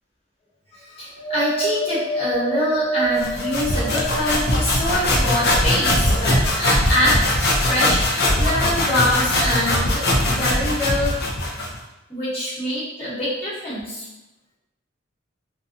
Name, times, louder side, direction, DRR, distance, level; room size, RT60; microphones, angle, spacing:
voice 1, 0.7-11.1 12.1-14.0, left 1 dB, 30° left, -10 dB, 1.1 m, -24 dB
Wind, 1.2-4.7 5.3-6.3 7.1-7.2, right 2 dB, 90° right, 0.3 m, -28 dB
sound 1, 3.2-11.8, left 1 dB, 55° left, 0.5 m, -20 dB
2.6 x 2.1 x 2.5 m, 0.96 s
head